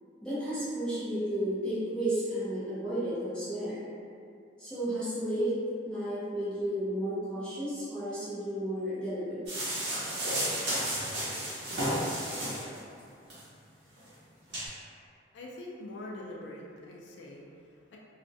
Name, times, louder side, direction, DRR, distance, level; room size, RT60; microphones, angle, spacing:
voice 1, 0.2-3.8 4.6-5.5 5.8-9.4, right 1 dB, 5° left, -13 dB, 0.6 m, -32 dB
sound 1, 9.5-12.8 13.3-13.4 14.0-14.1 14.5-14.7, right 1 dB, 65° right, 0.8 m, -32 dB
voice 2, 15.3-18.0, left 1 dB, 70° left, -2 dB, 0.4 m, -44 dB
2.4 x 2.1 x 2.6 m, 2.4 s
head